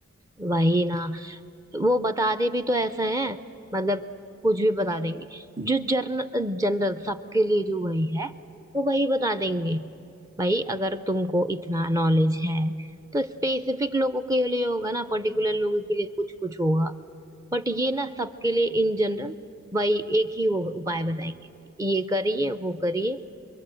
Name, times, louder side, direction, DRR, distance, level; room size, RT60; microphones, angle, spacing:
voice 1, 0.4-1.4 1.7-3.4 3.7-4.0 4.4-8.3 8.7-9.8 10.4-12.9 13.1-16.9 17.5-19.4 19.7-21.4 21.8-23.2, equal, 15° right, 10 dB, 0.5 m, -25 dB
25.0 x 22.5 x 7.6 m, 2.7 s
head